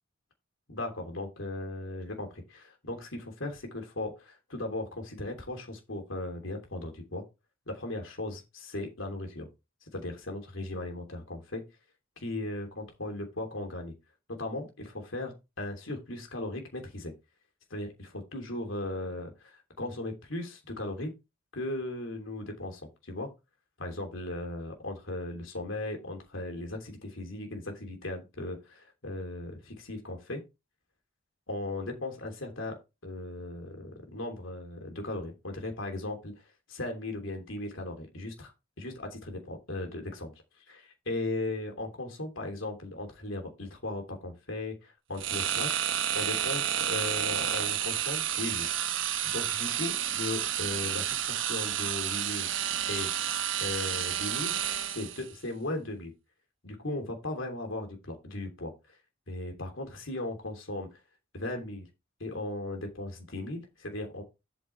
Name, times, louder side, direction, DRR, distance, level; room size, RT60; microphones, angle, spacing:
voice 1, 0.7-7.2 7.7-9.5 9.9-11.6 12.2-13.9 14.3-17.1 17.7-21.1 21.5-23.3 23.8-30.4 31.5-36.4 36.7-38.5 38.8-45.7 46.1-48.7 49.2-52.5 52.9-53.1 53.6-54.6 54.9-56.1 56.6-58.7 59.3-61.0 61.3-61.9 62.2-64.2, left 2 dB, 85° left, 3 dB, 3.0 m, -37 dB
sound 1, 45.2-55.3, right 10 dB, 75° right, 1.3 m, -30 dB
8.6 x 5.8 x 4.6 m, 0.25 s
head